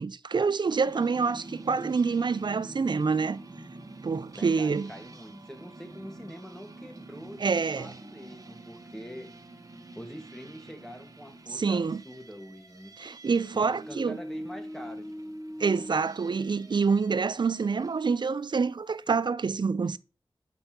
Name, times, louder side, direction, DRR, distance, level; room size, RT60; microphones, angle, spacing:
voice 1, 0.0-3.4 4.0-4.9 7.4-7.9 11.5-12.0 13.0-14.2 15.6-20.0, right 5 dB, 60° right, 0.4 m, -27 dB
sound 1, 0.8-18.0, right 1 dB, 40° right, 1.1 m, -45 dB
voice 2, 4.4-9.3 9.9-12.9 13.5-15.1, equal, 5° left, 1.4 m, -45 dB
6.9 x 5.3 x 2.8 m
wide cardioid pair, 65°, 9 cm